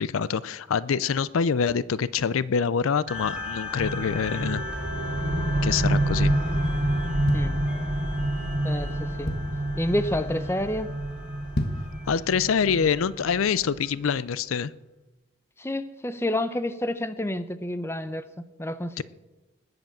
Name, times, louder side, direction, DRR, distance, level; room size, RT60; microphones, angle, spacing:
voice 1, 0.0-4.6 5.6-6.3 12.1-14.7 19.0-19.1, left 6 dB, 80° left, 19 dB, 0.5 m, -25 dB
sound 1, 3.1-14.0, left 3 dB, 5° right, 1.8 m, -39 dB
sound 2, 3.8-13.8, right 1 dB, 50° right, 3.1 m, -28 dB
sound 3, 7.0-8.2 8.7-8.8 9.0-9.7 10.2-10.5 10.7-10.8 11.4-12.0 12.4-12.5, left 1 dB, 50° left, 1.4 m, -31 dB
voice 2, 8.6-9.4 9.8-10.9 15.6-18.3 18.6-19.0, left 1 dB, 10° left, 12 dB, 0.6 m, -29 dB
20.0 x 7.9 x 7.3 m, 1.1 s
head